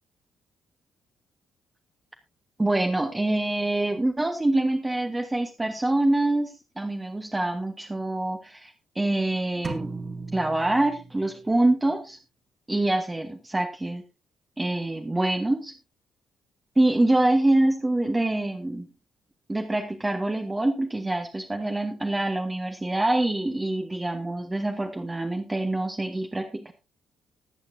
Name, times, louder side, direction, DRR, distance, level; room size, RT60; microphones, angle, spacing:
voice 1, 2.6-9.9 10.3-12.2 12.7-14.0 14.6-15.7 16.8-18.9 19.5-26.7, right 2 dB, 15° right, 5 dB, 1.4 m, -25 dB
sound 1, 9.6-11.5, right 3 dB, 40° right, 2.2 m, -37 dB
20.5 x 8.8 x 2.7 m, 0.28 s
figure-of-eight pair, 40°, 0 cm